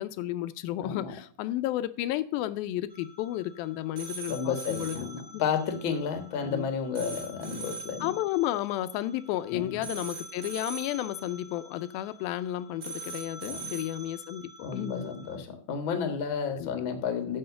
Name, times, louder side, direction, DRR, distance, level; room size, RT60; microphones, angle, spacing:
voice 1, 0.0-5.0 5.3-5.4 6.4-6.7 8.0-15.1 16.6-16.7, left 14 dB, 85° left, 2.4 m, -32 dB
voice 2, 0.8-1.1 4.3-8.1 9.5-9.8 13.5-13.7 14.6-17.4, left 6 dB, 50° left, 1.5 m, -32 dB
sound 1, 2.9-15.4, right 3 dB, 30° right, 3.6 m, -44 dB
7.7 x 7.1 x 6.7 m
omnidirectional pair, 4.2 m